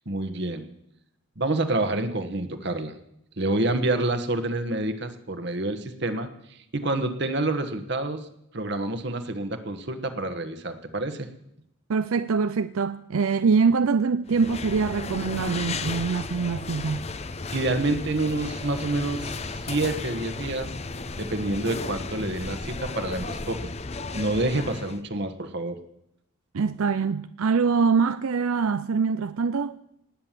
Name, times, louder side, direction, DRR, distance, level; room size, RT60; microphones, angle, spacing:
voice 1, 0.1-0.6 1.4-2.9 3.4-6.3 6.7-8.2 8.5-11.3 17.5-20.7 21.2-23.7 24.1-25.8, right 2 dB, 50° right, 1.3 m, -28 dB
voice 2, 11.9-17.0 26.5-29.8, right 5 dB, 80° right, 0.5 m, -24 dB
sound 1, 14.3-25.0, left 3 dB, 30° left, 0.6 m, -34 dB
19.0 x 8.7 x 7.5 m
head